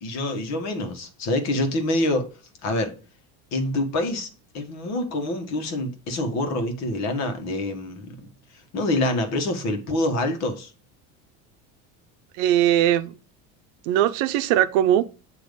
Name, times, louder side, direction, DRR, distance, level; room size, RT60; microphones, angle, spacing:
voice 1, 0.0-2.3 2.6-2.9 3.5-4.3 4.5-8.3 8.7-10.7, left 1 dB, 50° left, 1.5 m, -26 dB
voice 2, 12.4-13.2 13.9-15.0, right 11 dB, 80° right, 0.7 m, -20 dB
8.0 x 3.1 x 5.2 m
cardioid pair, 140°, 34 cm